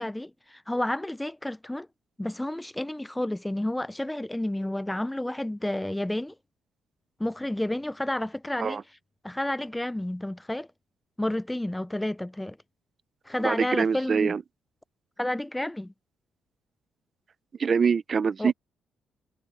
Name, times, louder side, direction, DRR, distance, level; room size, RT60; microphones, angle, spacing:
voice 1, 0.0-1.9 2.2-6.3 7.2-8.8 9.2-10.7 11.2-12.6 13.3-14.4 15.2-15.9 18.4-18.5, left 1 dB, 10° left, 0.6 m, -30 dB
voice 2, 13.4-14.4 17.6-18.5, right 6 dB, 45° right, 0.9 m, -24 dB
cardioid pair, 90°, 0 cm